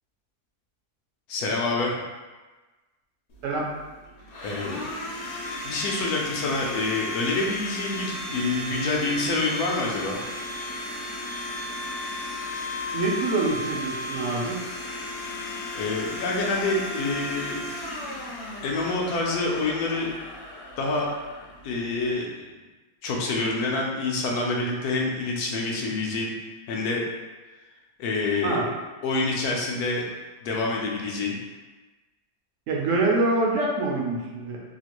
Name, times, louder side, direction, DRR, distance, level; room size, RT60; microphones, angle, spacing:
voice 1, 1.3-2.0 4.4-4.8 5.6-10.2 15.7-17.6 18.6-20.1 20.8-21.1 21.6-22.5 23.0-26.3 26.7-27.0 28.0-28.6 29.0-30.0 30.4-31.4, left 3 dB, 85° left, -1 dB, 1.1 m, -27 dB
Domestic sounds home sounds, 3.3-22.1, left 1 dB, 60° left, 0.8 m, -35 dB
voice 2, 12.9-14.6 28.4-28.7 32.7-34.6, right 2 dB, 70° right, -2 dB, 0.9 m, -25 dB
3.0 x 2.4 x 2.9 m, 1.2 s
omnidirectional pair, 1.5 m